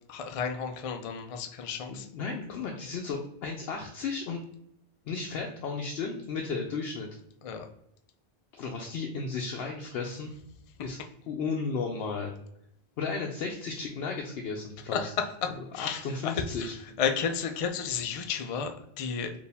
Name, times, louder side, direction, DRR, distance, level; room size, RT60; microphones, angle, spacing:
voice 1, 0.1-2.1 7.4-7.7 14.9-19.3, left 6 dB, 55° left, 5 dB, 0.4 m, -32 dB
voice 2, 1.9-4.4 5.0-7.1 8.5-10.3 10.8-11.0 11.3-12.3 13.0-15.0 15.8-16.7, left 4 dB, 75° left, 1 dB, 0.8 m, -34 dB
4.4 x 2.6 x 3.3 m, 0.76 s
omnidirectional pair, 1.0 m